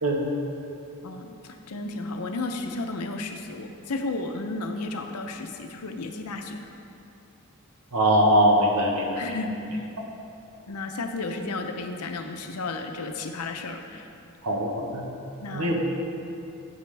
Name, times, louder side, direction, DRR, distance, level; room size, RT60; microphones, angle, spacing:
voice 1, 1.0-6.7 9.2-9.9 10.7-14.1 15.4-15.7, left 3 dB, 90° left, 5 dB, 0.7 m, -33 dB
voice 2, 7.9-9.2 14.4-15.0 15.5-15.7, equal, 90° right, 0 dB, 1.2 m, -21 dB
9.2 x 8.0 x 3.4 m, 2.7 s
head